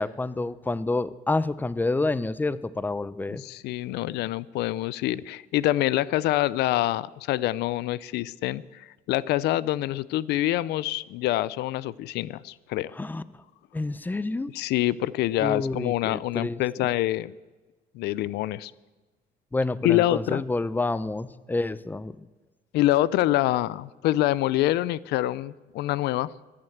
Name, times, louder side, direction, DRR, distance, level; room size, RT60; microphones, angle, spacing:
voice 1, 0.0-3.4 13.0-13.2 13.7-14.5 15.4-16.6 19.5-22.3, left 2 dB, 10° left, 18 dB, 0.6 m, -28 dB
voice 2, 3.4-12.9 14.5-17.3 17.9-18.7 19.8-20.4 22.7-26.3, left 15 dB, 80° left, 21 dB, 0.5 m, -26 dB
13.5 x 11.0 x 7.9 m, 1.2 s
cardioid pair, 110°, 17 cm